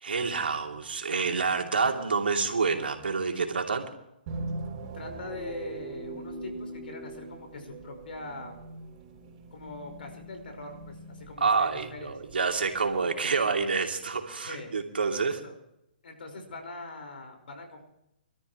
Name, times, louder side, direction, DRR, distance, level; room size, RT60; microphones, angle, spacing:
voice 1, 0.0-3.9 11.4-15.4, right 4 dB, 85° right, 3 dB, 2.8 m, -28 dB
sound 1, 4.3-13.0, right 2 dB, 40° right, 3.8 m, -41 dB
voice 2, 4.9-8.6 9.5-12.1 14.4-14.7 15.1-15.6 16.0-17.9, left 2 dB, 75° left, 5 dB, 5.0 m, -42 dB
25.5 x 13.5 x 3.1 m, 0.83 s
hypercardioid pair, 140°, 5 cm